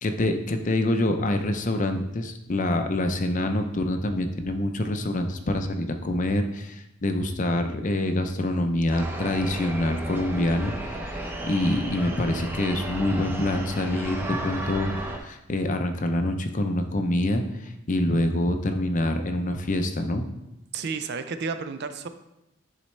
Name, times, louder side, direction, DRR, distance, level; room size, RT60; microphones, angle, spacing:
voice 1, 0.0-20.3, left 1 dB, 35° left, 6 dB, 0.5 m, -26 dB
sound 1, 8.9-15.2, right 1 dB, 10° right, 0.6 m, -34 dB
voice 2, 20.7-22.1, right 5 dB, 50° right, 10 dB, 0.4 m, -31 dB
10.0 x 4.0 x 3.2 m, 0.89 s
head